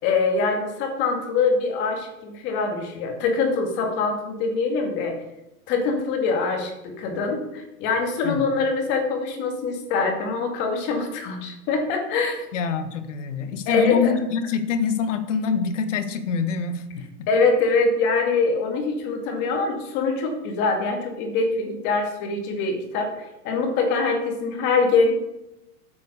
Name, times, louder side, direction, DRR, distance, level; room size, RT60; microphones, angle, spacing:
voice 1, 0.0-5.1 5.7-12.4 13.7-14.1 17.3-25.1, left 4 dB, 25° left, 3 dB, 2.2 m, -24 dB
voice 2, 12.5-17.3, left 6 dB, 50° left, 10 dB, 1.7 m, -25 dB
13.0 x 8.2 x 6.8 m, 0.93 s
hypercardioid pair, 170°, 46 cm